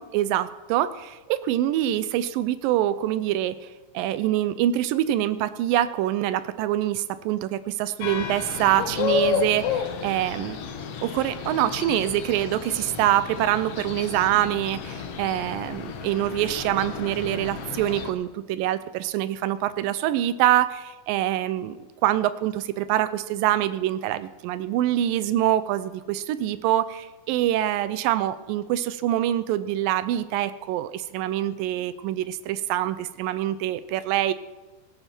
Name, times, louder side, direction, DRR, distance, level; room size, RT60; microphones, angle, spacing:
voice 1, 0.0-10.7 11.0-21.8 22.0-34.3, right 13 dB, 80° right, 14 dB, 2.0 m, -25 dB
sound 1, 8.0-18.1, left 6 dB, 85° left, 1.3 m, -31 dB
18.5 x 16.0 x 4.5 m, 1.2 s
omnidirectional pair, 4.5 m